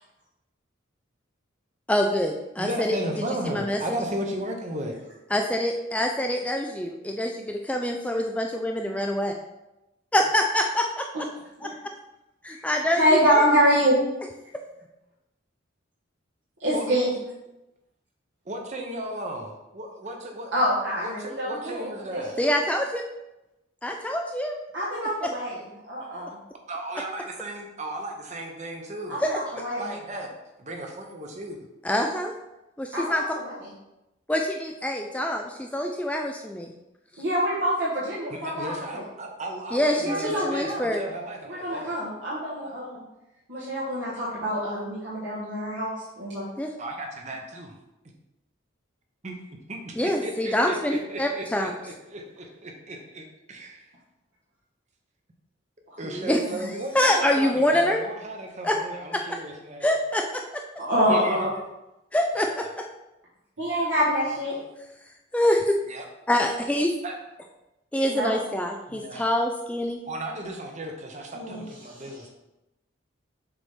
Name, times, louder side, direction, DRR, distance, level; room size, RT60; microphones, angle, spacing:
voice 1, 1.9-3.0 3.4-3.8 5.3-9.3 10.1-11.1 11.6-11.7 12.4-13.4 22.4-23.0 23.8-24.6 29.2-29.4 31.8-32.3 32.8-33.2 34.3-36.7 39.7-41.0 46.6-46.7 50.0-51.7 56.0-58.0 58.6-58.8 59.1-59.4 59.8-60.4 62.1-62.7 65.3-65.7 66.3-66.9 67.9-70.0 71.5-71.7, left 1 dB, 5° left, 2 dB, 0.3 m, -25 dB
voice 2, 2.6-5.0 16.7-17.1 18.5-20.5 21.0-22.4 26.7-29.2 29.8-30.3 30.6-31.6 38.3-42.0 46.8-47.7 49.2-49.4 49.7-53.9 56.0-59.9 61.1-61.5 62.5-62.7 63.7-64.4 65.9-66.0 67.0-67.1 68.9-69.3 70.0-72.3, right 1 dB, 35° right, 2 dB, 0.9 m, -35 dB
voice 3, 13.0-14.0 16.6-17.1 20.5-22.5 24.7-25.6 25.9-26.4 29.1-29.9 32.9-33.6 37.2-39.0 40.0-41.0 41.4-43.0 43.5-45.9 46.2-46.5 60.8-61.5 63.6-64.5 68.1-68.3 71.3-72.0, equal, 70° right, -8 dB, 1.5 m, -26 dB
7.0 x 4.2 x 3.6 m, 0.95 s
head